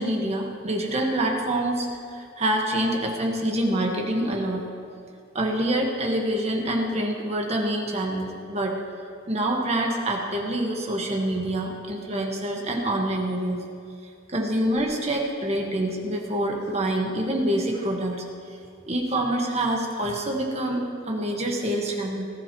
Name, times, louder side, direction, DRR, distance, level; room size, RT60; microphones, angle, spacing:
voice 1, 0.0-4.7 5.3-8.8 9.3-13.6 14.3-18.2 18.9-22.3, right 1 dB, 35° right, 0 dB, 1.5 m, -26 dB
19.5 x 12.5 x 3.1 m, 2.3 s
head